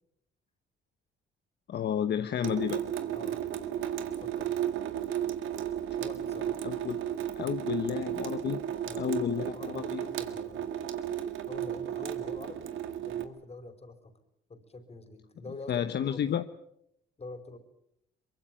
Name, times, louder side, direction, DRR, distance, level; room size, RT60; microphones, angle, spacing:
voice 1, 1.7-2.8 6.6-7.0 7.4-8.6 9.0-10.0 15.7-16.4, left 9 dB, 60° left, 10 dB, 1.1 m, -31 dB
Water tap faucet / Sink (filling or washing) / Drip, 2.4-13.2, right 10 dB, 85° right, 2.0 m, -34 dB
voice 2, 4.2-4.6 6.0-6.6 8.8-10.6 11.5-12.7 13.0-14.1 14.5-16.2 17.2-17.6, left 2 dB, 30° left, 9 dB, 4.8 m, -45 dB
23.5 x 22.5 x 7.6 m, 0.77 s
cardioid pair, 90°, 20 cm